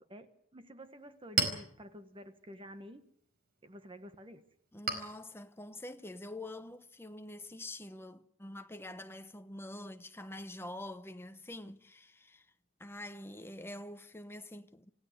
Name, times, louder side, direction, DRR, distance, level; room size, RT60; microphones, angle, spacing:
voice 1, 0.0-3.0 3.6-4.4, equal, 25° right, 1.3 m, -50 dB
Chink clink, 0.8-7.9, right 4 dB, 50° right, 4.7 m, -41 dB
voice 2, 4.7-12.5 12.8-14.9, left 1 dB, 10° left, 1.0 m, -46 dB
27.5 x 16.0 x 8.1 m
head